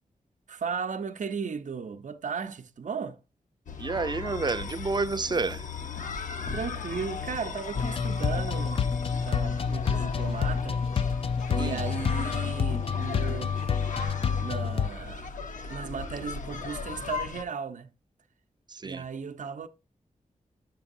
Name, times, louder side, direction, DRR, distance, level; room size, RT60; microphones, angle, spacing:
voice 1, 0.5-3.2 6.5-8.9 9.2-10.8 11.5-13.8 14.4-15.4 15.7-17.9 18.8-19.7, right 6 dB, 65° right, 0.7 m, -36 dB
sound 1, 3.7-17.4, left 5 dB, 70° left, 0.9 m, -38 dB
voice 2, 3.8-5.6 11.5-11.8 18.7-19.0, right 3 dB, 30° right, 0.6 m, -29 dB
sound 2, 7.7-14.9, left 6 dB, 45° left, 0.4 m, -28 dB
8.9 x 6.9 x 2.6 m
wide cardioid pair, 105°, 14 cm